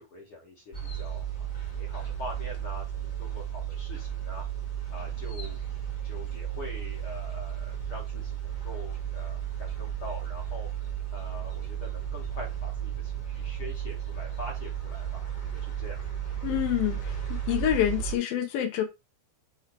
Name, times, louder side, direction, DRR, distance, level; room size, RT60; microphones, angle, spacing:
voice 1, 0.0-1.4 1.7-4.4 4.9-5.6 6.0-10.7 11.1-16.0 17.9-18.1, left 2 dB, 50° left, 1.8 m, -44 dB
sound 1, 0.7-18.2, right 9 dB, 30° left, 1.5 m, -34 dB
voice 2, 16.4-17.2 17.5-18.8, left 11 dB, 80° left, 3.0 m, -27 dB
6.5 x 3.2 x 4.5 m
omnidirectional pair, 4.1 m